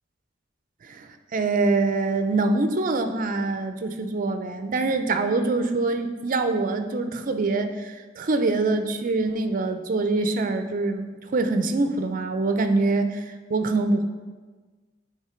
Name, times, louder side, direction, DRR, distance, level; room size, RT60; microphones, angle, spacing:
voice 1, 0.9-11.0 11.3-14.0, right 3 dB, 45° right, 8 dB, 0.5 m, -24 dB
8.5 x 3.3 x 4.4 m, 1.4 s
head